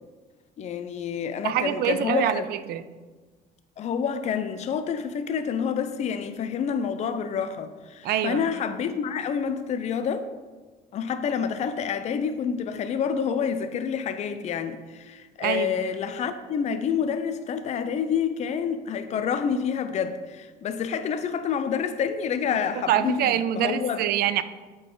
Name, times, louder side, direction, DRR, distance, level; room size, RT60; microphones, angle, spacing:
voice 1, 0.6-2.4 3.8-10.3 10.9-24.0, left 7 dB, 40° left, 0.4 m, -28 dB
voice 2, 1.4-2.8 8.0-8.4 15.4-15.7 22.9-24.4, right 11 dB, 70° right, 0.4 m, -25 dB
8.1 x 3.9 x 3.8 m
cardioid pair, 110°, 17 cm